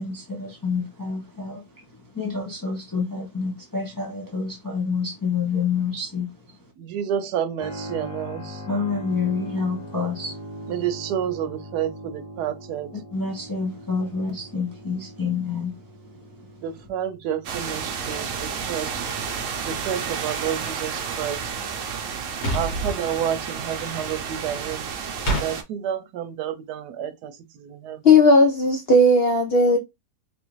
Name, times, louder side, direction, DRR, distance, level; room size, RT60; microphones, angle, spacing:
voice 1, 0.0-1.7 2.0-6.3 8.7-10.4 12.9-16.6, left 5 dB, 25° left, 0.5 m, -28 dB
voice 2, 6.8-8.6 10.7-12.9 16.6-19.1 19.6-21.5 22.5-24.9 25.4-28.2, right 9 dB, 85° right, 1.2 m, -30 dB
Keyboard (musical), 7.6-20.0, equal, 40° left, 1.3 m, -41 dB
sound 1, 17.4-25.6, right 6 dB, 60° right, 1.0 m, -31 dB
sound 2, 22.4-23.0 25.3-25.5, right 1 dB, 80° left, 1.8 m, -25 dB
voice 3, 28.0-29.8, left 2 dB, 60° left, 0.6 m, -16 dB
3.5 x 2.6 x 3.0 m
omnidirectional pair, 1.7 m